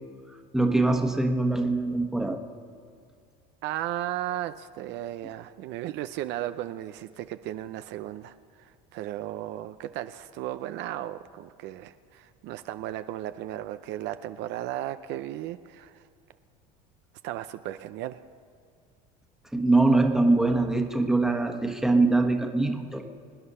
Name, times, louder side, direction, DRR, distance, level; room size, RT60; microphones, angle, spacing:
voice 1, 0.5-2.4 19.5-23.1, right 2 dB, ahead, 4 dB, 1.3 m, -23 dB
voice 2, 3.6-16.1 17.2-18.2, right 13 dB, 60° right, 11 dB, 0.6 m, -35 dB
25.5 x 9.7 x 5.6 m, 2.2 s
supercardioid pair, 115°, 20 cm